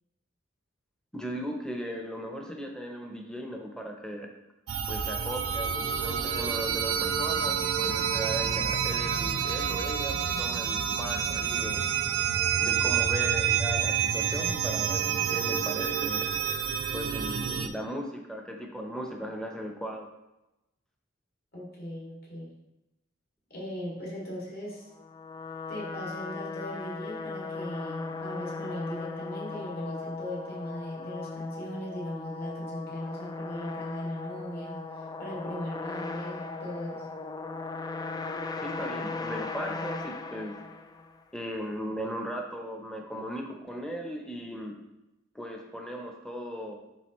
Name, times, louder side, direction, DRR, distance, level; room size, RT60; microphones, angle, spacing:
voice 1, 1.1-4.3 4.9-11.8 12.6-16.3 16.9-20.1 38.6-40.6 41.3-44.8 45.3-46.8, equal, 5° left, 1 dB, 0.8 m, -37 dB
sound 1, 4.7-17.7, right 8 dB, 80° right, 0.5 m, -28 dB
voice 2, 21.5-22.5 23.5-24.9 25.7-37.1, equal, 50° left, -5 dB, 2.5 m, -38 dB
sound 2, 24.9-41.2, left 3 dB, 20° left, 0.3 m, -38 dB
11.0 x 3.8 x 3.1 m, 0.94 s
head